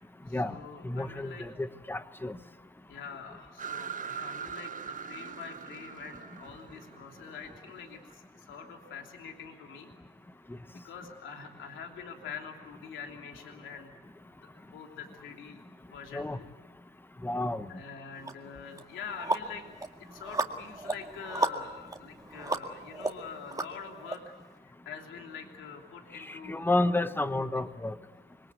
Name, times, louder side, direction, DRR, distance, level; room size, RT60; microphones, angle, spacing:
voice 1, 0.3-1.5 2.9-9.9 10.8-13.9 14.4-15.6 15.9-16.5 17.7-19.6 20.1-24.4 24.6-26.7 27.3-27.6, left 6 dB, 75° left, 3 dB, 3.1 m, -45 dB
voice 2, 0.8-2.4 16.1-16.4 17.2-17.7 26.3-27.9, left 2 dB, 10° left, 11 dB, 1.2 m, -30 dB
sound 1, 3.6-8.1, right 7 dB, 40° right, 1.2 m, -41 dB
sound 2, 18.2-18.3 18.8-24.2, right 2 dB, 15° right, 2.0 m, -34 dB
26.0 x 21.5 x 8.3 m, 1.2 s
cardioid pair, 90°, 20 cm